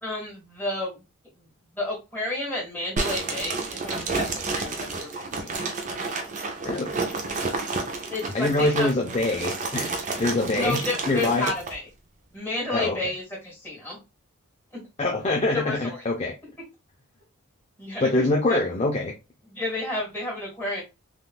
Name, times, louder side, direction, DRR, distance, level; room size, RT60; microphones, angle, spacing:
voice 1, 0.0-1.0 1.4-1.5 1.7-5.5 8.1-8.9 10.5-11.9 12.3-14.0 15.5-16.0 17.8-18.6 19.5-20.8, left 2 dB, 10° left, 1.8 m, -31 dB
sound 1, 3.0-11.7, right 3 dB, 35° right, 0.5 m, -30 dB
voice 2, 8.3-11.4 12.7-13.0 15.0-16.3 18.0-19.2, left 2 dB, 30° left, 0.4 m, -24 dB
3.5 x 2.4 x 2.3 m
head